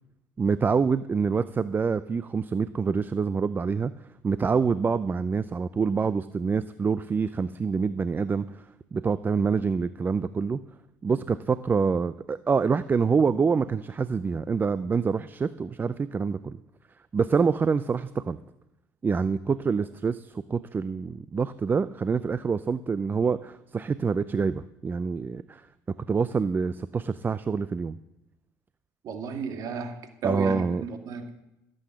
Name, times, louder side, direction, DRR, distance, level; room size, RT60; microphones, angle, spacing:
voice 1, 0.4-3.9 4.2-8.4 8.9-10.6 11.0-16.6 17.1-18.4 19.0-25.6 26.1-28.0 30.2-30.8, right 5 dB, 25° right, 14 dB, 0.5 m, -26 dB
voice 2, 29.0-31.3, right 5 dB, 55° right, 6 dB, 2.2 m, -33 dB
15.0 x 7.8 x 7.5 m, 0.89 s
supercardioid pair, 80°, 7 cm